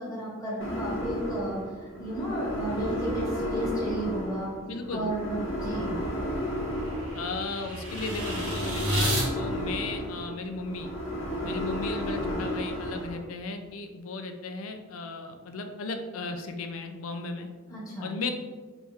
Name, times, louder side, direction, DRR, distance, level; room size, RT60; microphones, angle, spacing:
voice 1, 0.0-4.5 4.9-6.0 17.7-18.1, right 1 dB, 15° left, -6 dB, 1.2 m, -33 dB
sound 1, 0.6-13.2, equal, 65° left, 1.1 m, -33 dB
voice 2, 4.6-5.1 7.1-10.9 11.4-17.5 18.0-18.3, left 3 dB, 90° left, 6 dB, 0.5 m, -36 dB
sound 2, 5.6-9.3, equal, 85° right, 1.5 m, -32 dB
4.1 x 3.4 x 3.5 m, 1.4 s
head